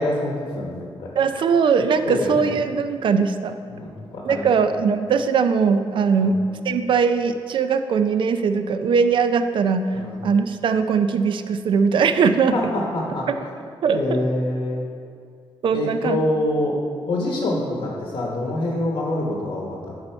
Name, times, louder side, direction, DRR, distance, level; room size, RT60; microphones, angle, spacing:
voice 1, 0.0-1.1 2.0-2.6 3.7-4.5 6.2-6.3 9.9-10.1 12.5-13.3 13.9-14.8 15.7-16.8 17.1-19.9, left 1 dB, 70° left, -2 dB, 1.1 m, -25 dB
voice 2, 1.2-3.6 4.2-12.7 13.3-13.4 13.8-14.3 15.6-16.2, right 5 dB, 60° right, 9 dB, 0.4 m, -20 dB
11.0 x 4.2 x 4.4 m, 2.3 s
wide cardioid pair, 160°, 10 cm